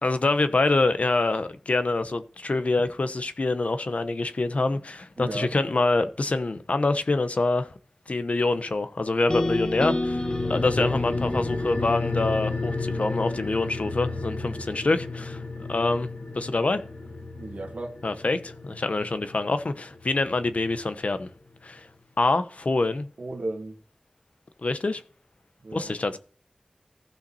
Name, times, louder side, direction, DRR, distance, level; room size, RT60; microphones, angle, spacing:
voice 1, 0.0-7.7 8.1-15.4 15.7-16.1 16.3-16.8 18.0-21.3 21.6-21.9 22.2-23.1 24.6-25.0 25.7-26.2, left 3 dB, 65° left, 1.1 m, -25 dB
voice 2, 5.2-5.5 10.6-10.9 17.4-17.9 23.2-23.8 25.6-25.9, right 2 dB, 70° right, 1.7 m, -34 dB
sound 1, 9.3-13.4, left 1 dB, 40° left, 1.2 m, -30 dB
sound 2, 10.0-20.9 21.2-21.3, left 3 dB, 90° left, 3.4 m, -33 dB
15.5 x 5.8 x 4.2 m
wide cardioid pair, 55°, 2 cm